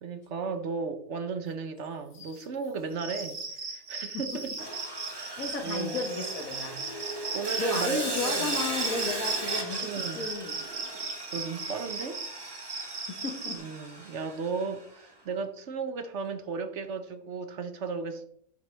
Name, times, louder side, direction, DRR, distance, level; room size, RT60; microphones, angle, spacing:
voice 1, 0.0-3.4 3.7-4.5 5.1-6.0 7.3-8.5 9.8-10.3 11.3-12.2 13.5-18.3, right 5 dB, 55° right, 1.0 m, -35 dB
sound 1, 1.5-5.5 5.8-6.8, left 5 dB, 85° left, 1.9 m, -53 dB
Cricket, 2.9-13.6, right 4 dB, 70° right, 1.9 m, -36 dB
Sawing, 4.6-14.8, right 2 dB, 15° right, 1.3 m, -37 dB
voice 2, 5.4-6.8 7.2-10.5 13.2-13.6 14.0-14.1, left 3 dB, 60° left, 1.9 m, -34 dB
9.5 x 7.9 x 3.4 m
omnidirectional pair, 1.6 m